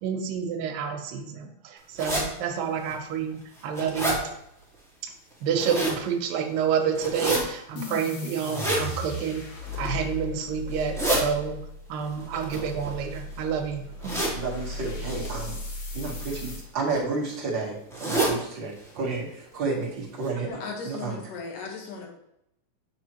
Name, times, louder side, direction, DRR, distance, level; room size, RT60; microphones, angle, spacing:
voice 1, 0.0-4.3 5.0-5.1 5.4-9.4 9.8-11.6 11.9-14.2, right 7 dB, 85° right, 5 dB, 2.5 m, -29 dB
sound 1, 2.0-2.2 2.9-3.0 3.4-4.2 5.3-6.0 6.9-7.4 8.4-8.8 9.6-10.0 10.7-11.2 12.3-13.3 14.0-14.4 15.0-15.3 16.3-16.6 16.9-17.0 17.2-17.3 17.9-18.3 18.8-18.9 19.1-19.2 19.8-19.9 20.2-20.3, right 1 dB, ahead, 0.9 m, -28 dB
sound 2, 7.8-16.6, left 2 dB, 60° left, 2.6 m, -37 dB
voice 2, 14.3-15.6 15.9-20.5 20.8-21.2, right 3 dB, 50° right, -3 dB, 1.4 m, -31 dB
voice 3, 20.5-22.1, left 4 dB, 75° left, 0 dB, 3.0 m, -37 dB
7.5 x 6.7 x 3.0 m, 0.80 s
omnidirectional pair, 3.9 m